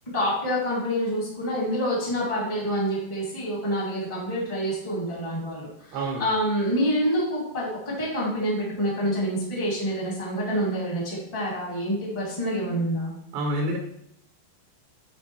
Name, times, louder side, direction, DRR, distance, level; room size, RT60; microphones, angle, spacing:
voice 1, 0.1-5.7 6.2-13.1, equal, 20° left, -5 dB, 1.0 m, -27 dB
voice 2, 5.9-6.2 13.3-13.8, right 1 dB, 80° right, 1 dB, 3.4 m, -27 dB
11.5 x 3.9 x 3.3 m, 0.71 s
omnidirectional pair, 5.0 m